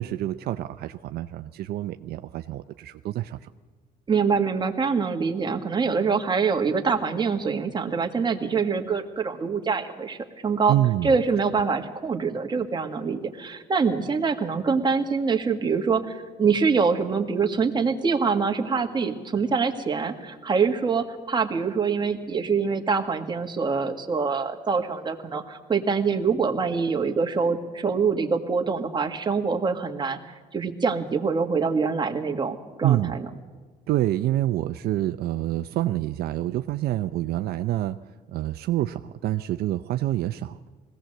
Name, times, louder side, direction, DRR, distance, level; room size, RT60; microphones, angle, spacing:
voice 1, 0.0-3.4 10.7-11.1 32.8-33.2 33.9-38.0 38.3-40.6, right 14 dB, 70° right, 10 dB, 0.6 m, -27 dB
voice 2, 4.1-10.2 10.4-10.7 11.0-30.2 30.5-33.3, right 5 dB, 25° right, 4 dB, 1.8 m, -25 dB
20.0 x 16.5 x 7.8 m, 1.3 s
cardioid pair, 110°, 17 cm